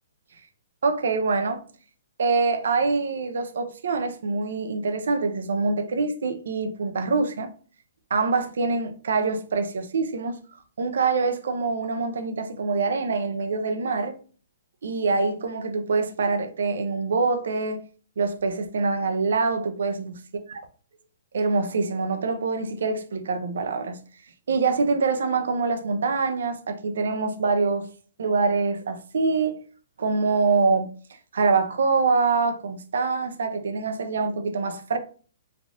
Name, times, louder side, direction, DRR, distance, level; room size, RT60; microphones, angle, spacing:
voice 1, 0.8-1.6 2.2-7.5 8.1-10.4 10.8-14.1 14.8-17.8 18.2-20.2 21.3-24.0 24.5-27.9 28.2-29.6 30.0-30.9 31.3-35.0, right 4 dB, 75° right, 0.5 m, -25 dB
3.3 x 2.4 x 2.5 m
hypercardioid pair, 160°, 0 cm